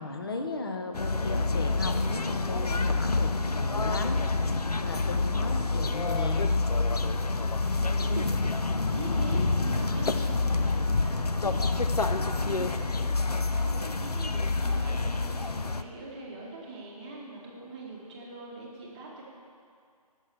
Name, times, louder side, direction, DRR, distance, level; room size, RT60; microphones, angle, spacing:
voice 1, 0.0-3.3 3.6-6.5, left 3 dB, 35° left, 5 dB, 0.8 m, -36 dB
sound 1, 0.9-15.8, left 3 dB, 75° left, 0.6 m, -27 dB
voice 2, 7.6-19.2, right 2 dB, 15° right, -4 dB, 1.1 m, -42 dB
12.0 x 6.3 x 6.7 m, 2.3 s
figure-of-eight pair, 155°, 20 cm